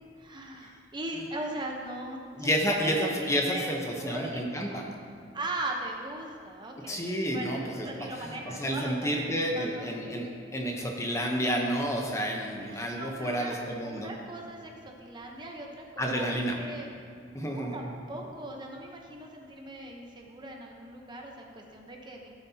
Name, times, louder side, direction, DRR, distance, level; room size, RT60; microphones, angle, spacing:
voice 1, 0.2-4.8 5.3-9.2 9.5-9.9 12.6-16.9 17.3-22.3, right 1 dB, 25° right, 1 dB, 0.9 m, -39 dB
voice 2, 2.3-4.8 6.9-8.1 8.6-14.1 16.0-16.6 17.3-17.9, equal, 15° left, 0 dB, 0.9 m, -30 dB
15.5 x 7.5 x 2.9 m, 2.3 s
head